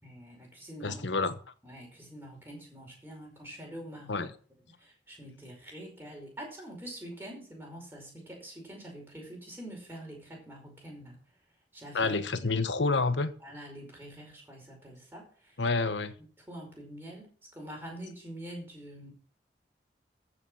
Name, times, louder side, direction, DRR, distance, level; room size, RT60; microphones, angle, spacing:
voice 1, 0.0-1.0 1.6-4.3 4.8-11.2 11.7-12.2 13.4-15.6 16.5-17.3 17.5-19.1, right 1 dB, 10° right, 5.1 m, -45 dB
voice 2, 0.8-1.4 4.1-4.3 11.9-13.3 15.6-16.1, left 3 dB, 85° left, 1.1 m, -28 dB
14.5 x 6.5 x 6.2 m
head